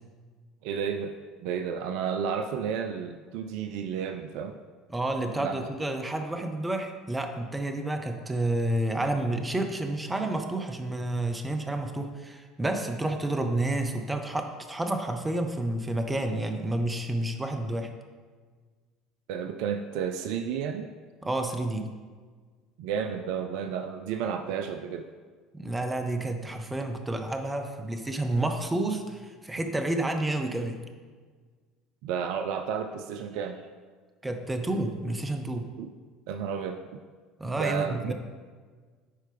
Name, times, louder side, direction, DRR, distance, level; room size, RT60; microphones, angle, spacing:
voice 1, 0.6-4.6 5.4-5.7 19.3-20.9 22.8-25.1 32.0-33.6 35.8-35.9 36.3-36.8 37.6-38.1, right 7 dB, 60° right, 6 dB, 0.3 m, -32 dB
voice 2, 4.9-17.9 21.2-21.9 25.5-30.8 34.2-35.7 37.4-38.1, right 2 dB, 15° right, 5 dB, 0.8 m, -30 dB
10.0 x 4.5 x 3.4 m, 1.5 s
figure-of-eight pair, 65°, 0 cm